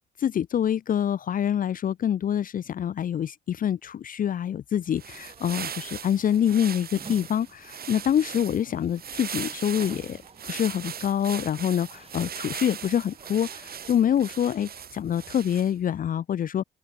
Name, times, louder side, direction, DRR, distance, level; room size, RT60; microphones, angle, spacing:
voice 1, 0.2-10.2 10.4-16.6, left 9 dB, 50° left, 0.5 m, -26 dB
sound 1, 4.8-15.9, right 8 dB, 55° right, 1.8 m, -39 dB
sound 2, 5.1-14.8, right 4 dB, 35° right, 6.0 m, -51 dB
open air
cardioid pair, 80°, 18 cm